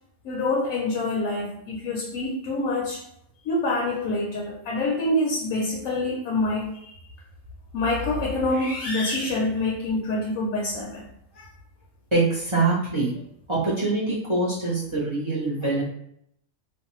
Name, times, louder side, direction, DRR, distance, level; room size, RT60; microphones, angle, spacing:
voice 1, 0.2-3.0 3.4-6.9 7.7-11.1 11.3-11.5, left 2 dB, 70° left, -2 dB, 1.0 m, -26 dB
voice 2, 12.1-13.2 13.5-15.8, right 3 dB, 30° right, -7 dB, 0.5 m, -24 dB
2.6 x 2.1 x 3.0 m, 0.74 s
omnidirectional pair, 1.5 m